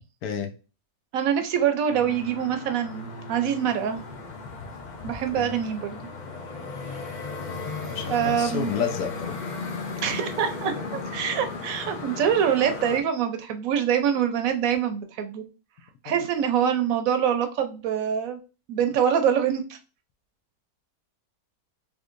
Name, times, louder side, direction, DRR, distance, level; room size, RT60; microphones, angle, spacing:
voice 1, 0.2-0.5 5.3-5.6 7.9-9.4 10.9-11.0 16.0-16.2, left 7 dB, 80° left, 6 dB, 1.2 m, -31 dB
voice 2, 1.1-4.0 5.0-6.0 8.1-8.7 10.0-15.4 16.0-18.4 18.7-19.8, right 8 dB, 70° right, 8 dB, 0.9 m, -25 dB
sound 1, 1.9-13.0, left 3 dB, 60° left, 0.4 m, -36 dB
3.6 x 3.0 x 2.5 m, 0.33 s
omnidirectional pair, 1.6 m